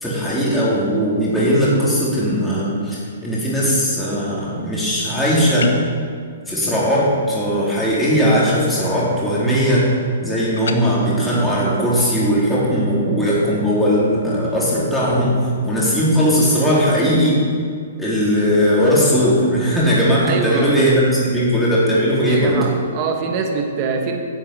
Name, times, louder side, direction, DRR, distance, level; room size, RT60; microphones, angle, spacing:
voice 1, 0.0-5.8 6.5-9.9 10.2-15.4 15.6-17.4 18.0-22.6, equal, 5° left, -8 dB, 3.8 m, -18 dB
sound 1, 5.6-6.0 10.6-10.8, left 5 dB, 85° left, 0.9 m, -25 dB
voice 2, 20.2-20.8 22.2-24.2, right 5 dB, 35° right, 3 dB, 1.7 m, -23 dB
10.5 x 7.4 x 7.9 m, 2.1 s
hypercardioid pair, 150°, 0 cm